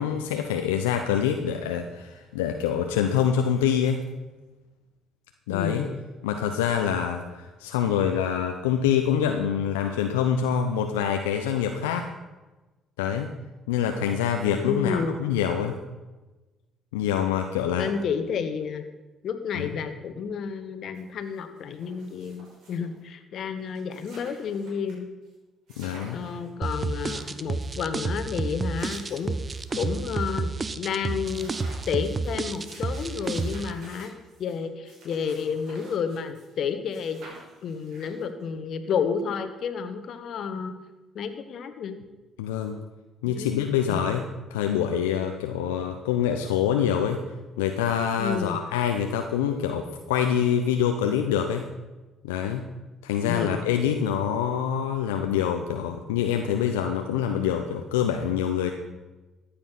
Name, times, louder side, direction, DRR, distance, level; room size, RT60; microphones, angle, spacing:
voice 1, 0.0-4.0 5.5-5.8 6.2-12.1 13.0-13.3 13.7-15.8 16.9-17.9 19.5-19.7 25.8-26.2 42.4-42.8 43.2-44.2 44.5-47.2 47.6-51.7 52.2-52.6 53.0-58.7, left 8 dB, 85° left, 5 dB, 0.7 m, -25 dB
voice 2, 5.5-6.0 14.6-15.2 17.8-18.8 19.2-25.1 26.1-29.4 29.8-31.5 31.9-34.1 34.4-37.2 37.6-40.8 41.1-42.0 43.2-43.6 43.9-44.3 48.2-48.6 53.3-53.6, left 6 dB, 60° left, 9 dB, 1.3 m, -31 dB
sound 1, 20.9-21.0 21.3-23.0 23.4-23.5 23.7-24.9 25.3-25.4 25.7-26.5 26.9-27.8 28.5-30.1 30.5-30.6 30.9-36.6 36.9-38.4, right 2 dB, 70° right, 5.6 m, -50 dB
sound 2, 26.6-33.7, right 4 dB, 35° right, 0.9 m, -30 dB
14.0 x 8.7 x 5.9 m, 1.1 s
hypercardioid pair, 50°, 0 cm